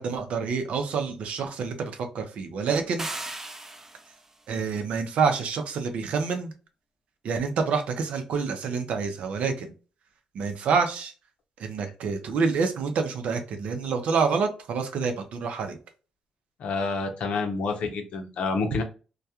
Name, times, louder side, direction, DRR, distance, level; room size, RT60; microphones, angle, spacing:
voice 1, 0.0-3.1 4.5-6.5 7.2-9.7 10.3-11.1 11.6-15.8, right 5 dB, 70° right, 6 dB, 0.6 m, -27 dB
sound 1, 3.0-4.3, right 2 dB, 20° right, 0.5 m, -36 dB
voice 2, 16.6-18.8, left 4 dB, 70° left, 5 dB, 0.6 m, -28 dB
2.2 x 2.2 x 2.7 m, 0.35 s
supercardioid pair, 60°, 2 cm